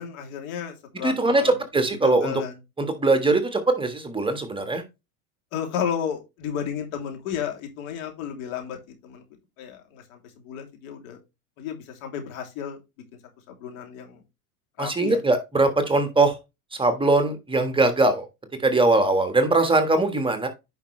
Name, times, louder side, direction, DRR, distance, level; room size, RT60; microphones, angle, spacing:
voice 1, 0.0-1.5 2.0-2.5 5.5-9.2 9.6-11.2 11.6-12.8 13.5-14.2 14.8-15.2, left 8 dB, 70° left, 3.1 m, -33 dB
voice 2, 1.0-2.3 2.8-4.8 14.8-16.4 16.7-18.3 18.6-20.5, right 2 dB, 10° right, 1.5 m, -21 dB
9.8 x 5.4 x 3.2 m
hypercardioid pair, 105°, 43 cm